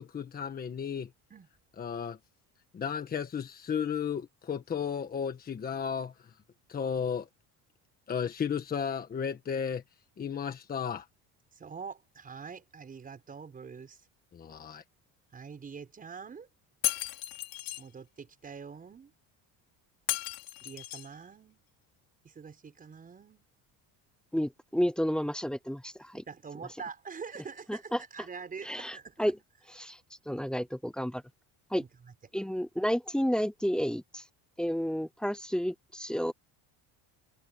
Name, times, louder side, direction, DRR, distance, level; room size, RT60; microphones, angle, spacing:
voice 1, 0.0-1.1 1.8-2.2 2.7-6.4 6.7-7.3 8.1-9.8 10.2-11.1 14.3-14.8, left 7 dB, 25° left, 1.5 m, -34 dB
voice 2, 11.5-14.0 15.3-16.5 17.8-19.1 20.6-21.6 22.2-23.4 26.1-29.3 31.8-32.1, right 6 dB, 20° right, 6.1 m, -45 dB
Shatter, 16.8-17.8 20.1-21.1, left 16 dB, 65° left, 3.2 m, -34 dB
voice 3, 24.3-26.2 27.7-28.0 28.6-29.4 29.8-30.0 30.3-31.2 31.7-31.8 32.3-34.2 34.6-36.3, equal, ahead, 0.8 m, -31 dB
cardioid pair, 170°, 40 cm